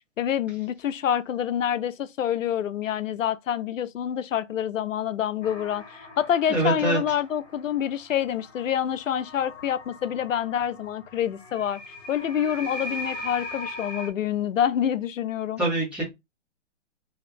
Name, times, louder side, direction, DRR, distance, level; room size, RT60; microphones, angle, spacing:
voice 1, 0.2-15.6, left 9 dB, 80° left, 0.5 m, -27 dB
sound 1, 5.4-14.1, left 2 dB, 60° left, 1.0 m, -40 dB
voice 2, 6.5-7.0 15.6-16.0, right 2 dB, 5° right, 0.4 m, -24 dB
2.6 x 2.4 x 3.5 m
figure-of-eight pair, 125°, 38 cm